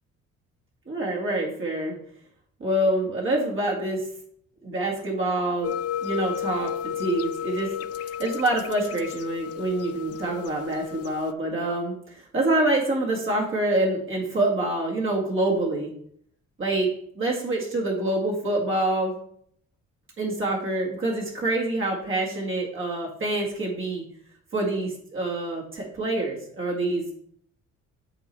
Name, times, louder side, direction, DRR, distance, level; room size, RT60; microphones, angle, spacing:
voice 1, 0.9-2.0 2.6-4.1 4.6-5.7 6.0-7.7 8.0-15.9 16.6-16.9 17.2-19.1 20.2-24.0 24.5-27.1, right 2 dB, 45° right, -3 dB, 2.2 m, -26 dB
sound 1, 5.6-11.3, left 10 dB, 55° left, 0.5 m, -33 dB
8.0 x 3.9 x 4.5 m, 0.66 s
cardioid pair, 90°, 30 cm